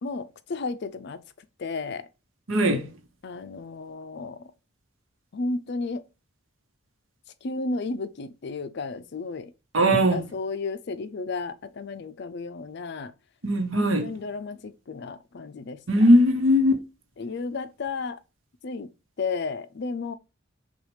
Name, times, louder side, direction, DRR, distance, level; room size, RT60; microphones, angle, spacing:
voice 1, 0.0-1.2 1.6-2.0 3.2-4.4 5.3-6.0 7.4-9.5 9.9-13.1 13.7-15.8 17.2-18.2 18.6-18.9 19.2-20.1, left 3 dB, 55° left, 0.5 m, -33 dB
voice 2, 2.5-2.9 9.7-10.2 13.4-14.1 15.9-16.8, equal, 80° right, 1.0 m, -19 dB
6.0 x 2.4 x 3.2 m
head